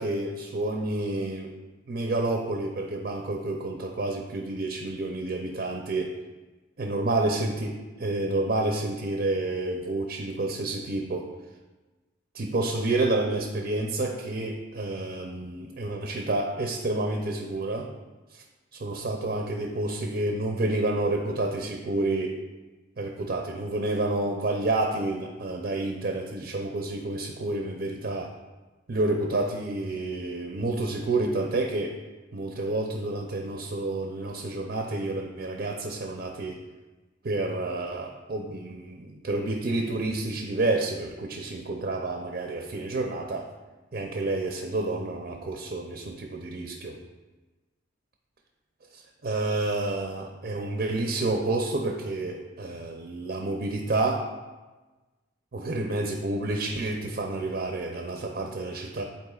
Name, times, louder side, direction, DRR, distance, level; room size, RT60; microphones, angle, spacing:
voice 1, 0.0-1.5 1.9-6.2 6.8-11.3 12.3-17.9 18.3-18.4 18.7-22.4 23.0-28.3 28.9-32.0 32.3-36.6 37.2-43.5 43.9-47.0 48.9-54.3 55.5-59.0, right 2 dB, 45° right, 2 dB, 0.5 m, -29 dB
11.0 x 4.3 x 2.4 m, 1.2 s
head